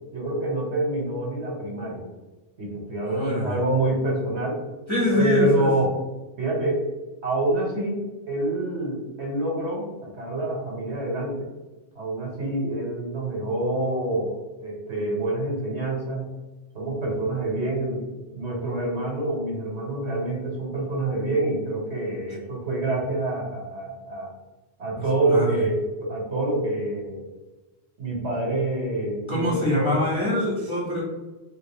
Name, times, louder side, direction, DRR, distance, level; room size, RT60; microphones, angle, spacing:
voice 1, 0.1-2.1 2.6-4.6 5.1-6.0 6.4-6.8 7.2-11.5 11.9-16.3 16.7-24.3 24.8-27.2 28.0-30.0, right 2 dB, 65° right, -2 dB, 1.3 m, -27 dB
voice 2, 3.0-3.5 4.9-5.7 25.3-25.5 29.3-31.0, left 1 dB, 25° left, -6 dB, 0.9 m, -24 dB
3.3 x 2.3 x 3.4 m, 1.2 s
omnidirectional pair, 1.3 m